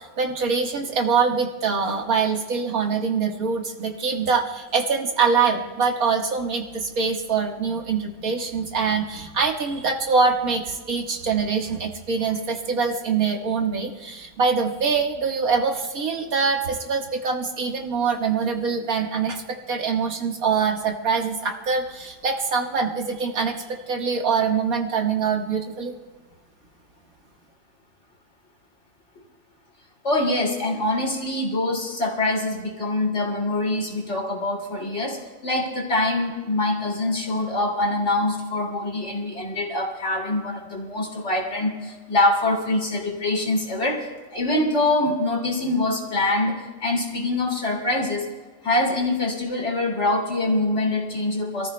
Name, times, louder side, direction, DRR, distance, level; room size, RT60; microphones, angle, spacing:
voice 1, 0.0-25.9, right 5 dB, 75° right, 2 dB, 1.9 m, -24 dB
voice 2, 30.0-48.3 48.6-51.7, left 2 dB, 50° left, 0 dB, 2.8 m, -24 dB
27.0 x 14.5 x 2.2 m, 1.3 s
omnidirectional pair, 1.5 m